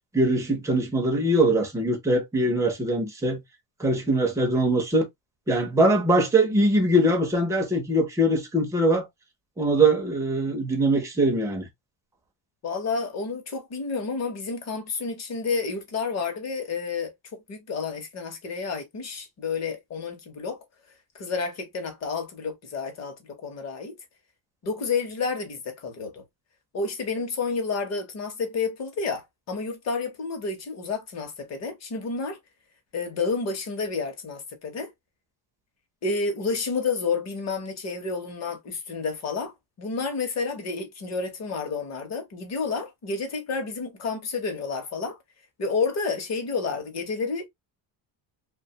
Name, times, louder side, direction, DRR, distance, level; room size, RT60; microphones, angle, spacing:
voice 1, 0.1-3.4 3.8-5.1 5.5-9.1 9.6-11.7, right 1 dB, 5° right, 0.4 m, -22 dB
voice 2, 12.6-17.1 17.5-20.6 21.1-24.0 24.6-26.2 26.7-32.4 32.9-34.9 36.0-45.2 45.6-47.5, left 4 dB, 35° left, 0.7 m, -30 dB
2.7 x 2.2 x 2.6 m
cardioid pair, 170°, 49 cm